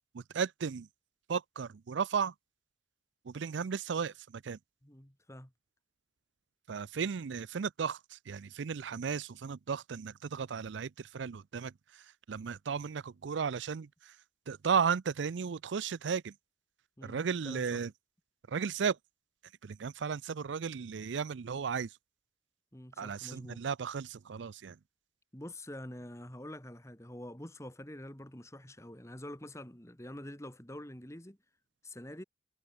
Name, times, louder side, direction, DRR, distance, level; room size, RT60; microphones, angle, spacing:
voice 1, 0.1-0.9 1.3-2.3 3.3-4.6 6.7-14.1 14.5-16.3 17.0-17.9 18.5-19.0 19.6-21.9 23.0-24.8, right 6 dB, 75° right, 0.5 m, -35 dB
voice 2, 4.8-5.5 7.0-7.1 17.0-17.8 22.7-23.6 25.3-31.4 31.8-32.2, left 1 dB, 15° left, 2.5 m, -46 dB
head